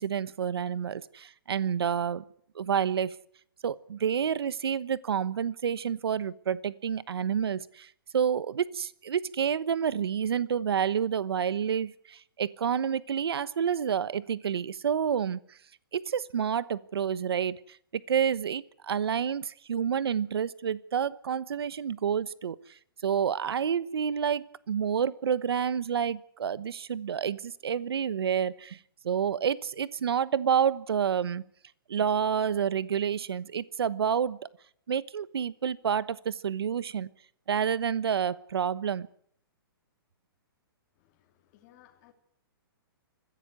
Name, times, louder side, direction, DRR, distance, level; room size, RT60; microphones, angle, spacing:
voice 1, 0.0-2.2 2.5-3.1 3.6-15.4 15.9-22.6 23.0-28.8 29.0-31.4 31.9-34.5 34.9-37.1 37.5-39.1, right 8 dB, 85° right, 18 dB, 1.1 m, -29 dB
voice 2, 40.9-42.1, left 12 dB, 30° left, 2 dB, 2.9 m, -60 dB
22.0 x 15.5 x 9.6 m, 0.66 s
hypercardioid pair, 160°, 13 cm